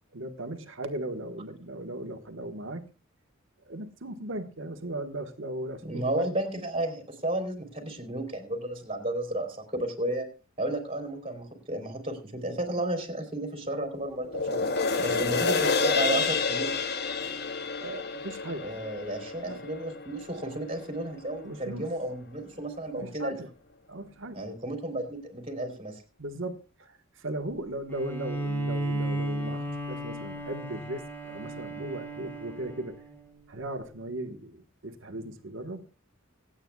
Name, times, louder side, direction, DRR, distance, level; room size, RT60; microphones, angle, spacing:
voice 1, 0.1-2.8 3.6-6.3 15.1-15.3 17.8-18.6 19.5-19.6 21.4-21.9 23.0-23.5 23.9-24.4 26.2-26.5 26.8-33.0 33.5-35.9, right 1 dB, 65° right, 7 dB, 1.4 m, -37 dB
voice 2, 5.8-10.3 10.6-14.7 15.0-16.7 18.6-23.3 24.3-26.0, right 1 dB, 30° right, 5 dB, 3.3 m, -33 dB
sound 1, 14.2-20.8 21.3-21.4, left 4 dB, 55° left, 0.9 m, -29 dB
Bowed string instrument, 27.9-33.4, right 1 dB, 10° left, 2.3 m, -34 dB
25.5 x 8.9 x 2.3 m, 0.30 s
head